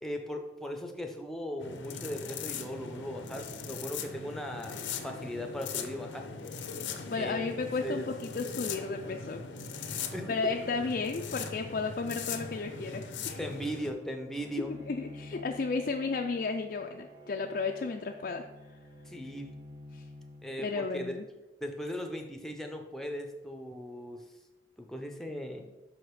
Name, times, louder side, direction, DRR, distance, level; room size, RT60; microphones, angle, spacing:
voice 1, 0.0-6.3 7.2-8.0 10.1-10.3 13.4-14.7 19.0-19.5 20.4-21.2 21.6-24.2 24.8-25.6, equal, ahead, 3 dB, 0.6 m, -38 dB
sound 1, 1.6-13.9, left 5 dB, 85° left, 0.7 m, -40 dB
voice 2, 7.1-9.4 10.3-13.4 14.7-18.4 19.9-20.0 20.6-21.2, left 4 dB, 50° left, 3 dB, 0.3 m, -33 dB
Bowed string instrument, 14.3-21.0, left 1 dB, 20° right, 1.0 m, -50 dB
6.1 x 4.9 x 4.7 m, 1.1 s
head